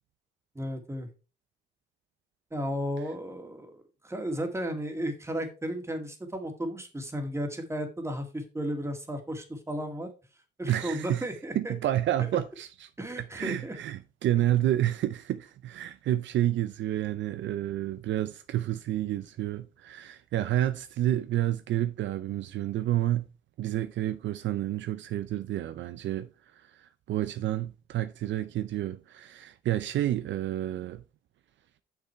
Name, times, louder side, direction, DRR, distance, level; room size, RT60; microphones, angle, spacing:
voice 1, 0.6-1.1 2.5-10.1 10.6-11.7 13.0-13.8, equal, 15° right, 1.9 m, -34 dB
voice 2, 10.7-11.3 11.5-12.9 13.2-23.3 23.6-26.3 26.8-31.0, right 13 dB, 70° right, 0.6 m, -29 dB
6.5 x 6.1 x 4.4 m
cardioid pair, 90°, 20 cm